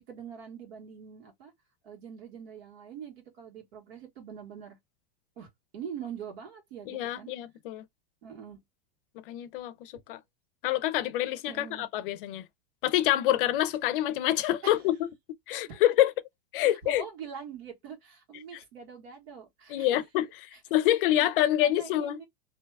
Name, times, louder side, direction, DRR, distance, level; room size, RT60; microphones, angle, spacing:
voice 1, 0.0-1.5 1.8-4.8 5.4-7.3 8.2-8.6 11.5-11.9 14.6-14.8 15.6-16.1 16.6-20.0 20.5-20.6 21.2-21.3 21.6-22.3, right 7 dB, 75° right, 1.5 m, -44 dB
voice 2, 6.9-7.8 9.3-10.2 10.6-12.4 12.8-15.0 15.5-16.1 16.5-17.0 19.7-20.2 20.7-22.2, left 13 dB, 55° left, 0.5 m, -26 dB
2.7 x 2.3 x 3.3 m
supercardioid pair, 150°, 32 cm